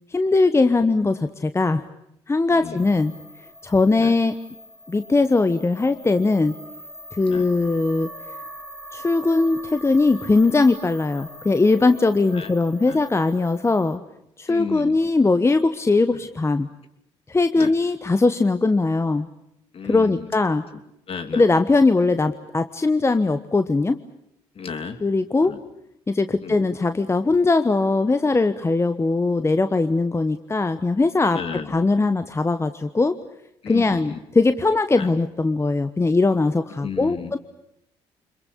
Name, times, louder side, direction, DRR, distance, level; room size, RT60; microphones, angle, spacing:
voice 1, 0.1-1.8 2.3-3.1 3.6-4.3 4.9-6.5 7.1-8.1 8.9-14.0 14.4-16.7 17.3-19.3 19.9-20.6 21.3-24.0 25.0-25.5 26.1-31.4 31.7-33.2 33.7-37.4, left 3 dB, 20° left, 10 dB, 1.1 m, -20 dB
voice 2, 2.5-3.0 4.0-4.1 7.3-7.5 12.3-12.5 12.9-13.0 14.5-15.0 16.1-16.2 17.6-17.7 19.7-20.3 21.1-21.5 24.5-25.0 25.4-25.6 26.4-26.6 31.3-31.7 33.6-34.2 35.0-35.1 36.8-37.4, left 6 dB, 50° left, 8 dB, 3.0 m, -33 dB
sound 1, 2.8-14.0, equal, 5° left, 4.2 m, -42 dB
26.0 x 22.0 x 8.5 m, 0.81 s
supercardioid pair, 70°, 12 cm